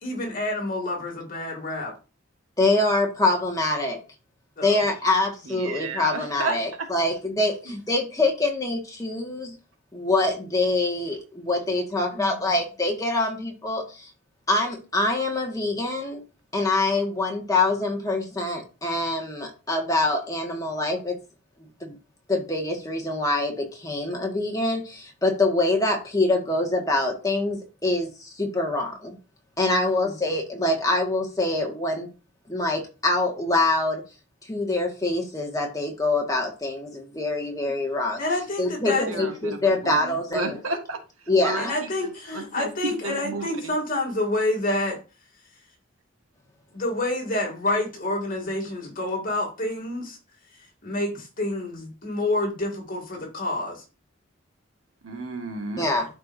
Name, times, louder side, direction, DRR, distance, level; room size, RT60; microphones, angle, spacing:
voice 1, 0.0-1.9 4.6-4.9 7.7-7.8 12.1-12.3 29.9-30.1 38.2-39.1 41.6-45.0 46.7-50.2 50.8-53.8, left 2 dB, 40° left, 0 dB, 2.5 m, -28 dB
voice 2, 2.6-4.0 4.6-9.5 9.9-14.1 14.5-16.2 16.5-21.2 21.8-22.0 22.3-29.2 29.6-32.1 32.5-34.0 34.5-38.2 38.6-40.6 41.3-41.7 55.8-56.1, left 2 dB, 15° left, 1 dB, 1.7 m, -25 dB
voice 3, 5.4-6.6 38.9-41.0 41.4-43.8 55.0-55.9, right 3 dB, 90° right, 5 dB, 1.5 m, -32 dB
12.0 x 4.6 x 2.7 m, 0.31 s
head